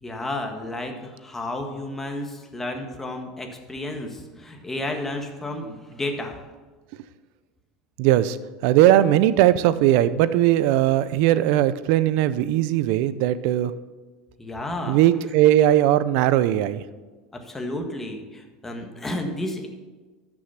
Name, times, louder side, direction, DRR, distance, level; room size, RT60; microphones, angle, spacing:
voice 1, 0.0-6.4 14.4-15.0 17.3-19.7, left 1 dB, 10° left, 3 dB, 1.6 m, -32 dB
voice 2, 8.0-8.4 8.6-13.7 14.9-16.8, right 13 dB, 65° right, 15 dB, 0.6 m, -19 dB
13.0 x 6.3 x 5.8 m, 1.3 s
supercardioid pair, 125°, 3 cm